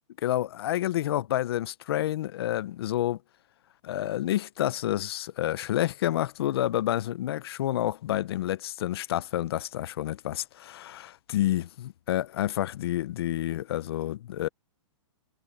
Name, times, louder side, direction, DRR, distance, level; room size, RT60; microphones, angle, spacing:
voice 1, 0.2-3.2 3.8-14.5, left 13 dB, 50° left, 0.8 m, -29 dB
hypercardioid pair, 165°, 16 cm